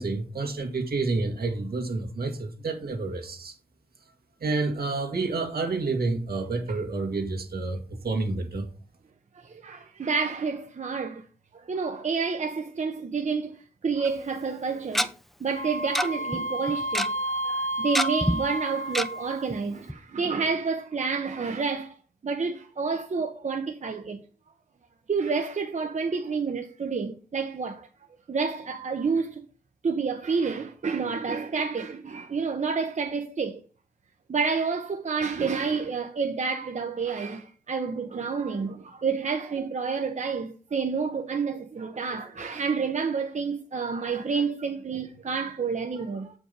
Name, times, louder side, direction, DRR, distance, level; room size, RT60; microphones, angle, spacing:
voice 1, 0.0-3.5 4.4-8.7, right 3 dB, 80° right, 1.7 m, -29 dB
voice 2, 9.3-11.2 11.5-15.1 15.4-22.0 22.2-24.2 25.1-27.9 28.3-29.4 29.8-33.6 34.3-46.3, right 5 dB, 50° right, 0.8 m, -29 dB
Tick-tock, 14.0-14.1 14.9-15.1 15.9-16.1 16.3-16.4 16.7-17.1 17.9-18.3 18.9-19.1 19.5-19.6 19.9-20.0, equal, ahead, 0.6 m, -25 dB
Wind instrument woodwind instrument, 15.5-19.5, right 1 dB, 55° left, 1.2 m, -31 dB
7.8 x 5.0 x 5.1 m
wide cardioid pair, 110°, 16 cm